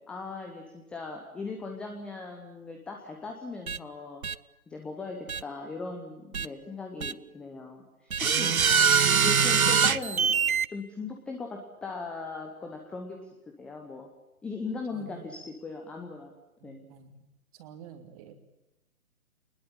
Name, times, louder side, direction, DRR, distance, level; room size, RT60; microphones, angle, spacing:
voice 1, 0.0-4.3 4.7-8.5 9.2-10.4 10.7-13.2 13.6-14.1 14.4-16.3 16.6-16.9, left 3 dB, ahead, 2 dB, 0.8 m, -39 dB
sound 1, 3.7-3.8 4.2-4.3 5.3-5.4 6.3-6.5 7.0-7.1 8.1-10.7, right 6 dB, 75° right, 0.9 m, -23 dB
voice 2, 14.9-15.3 16.6-17.2 17.5-18.3, right 7 dB, 25° right, 8 dB, 2.7 m, -49 dB
25.0 x 20.5 x 8.7 m, 0.95 s
figure-of-eight pair, 135°, 43 cm